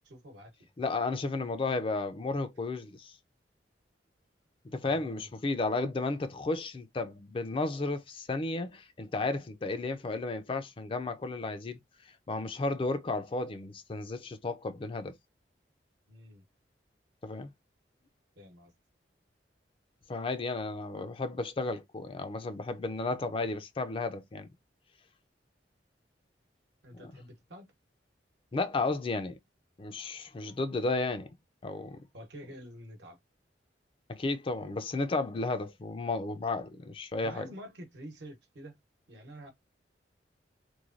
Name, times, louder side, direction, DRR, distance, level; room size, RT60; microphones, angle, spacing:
voice 1, 0.0-0.7 4.8-5.3 16.1-16.4 18.4-18.7 26.8-27.7 32.1-33.2 37.2-38.8 39.1-39.5, equal, 75° right, 1.0 m, -48 dB
voice 2, 0.8-3.1 4.6-11.8 12.3-15.2 17.2-17.5 20.1-24.5 27.0-27.1 28.5-29.4 29.8-31.3 31.6-32.0 34.1-37.4, left 3 dB, 30° left, 0.4 m, -33 dB
3.1 x 2.2 x 2.4 m
head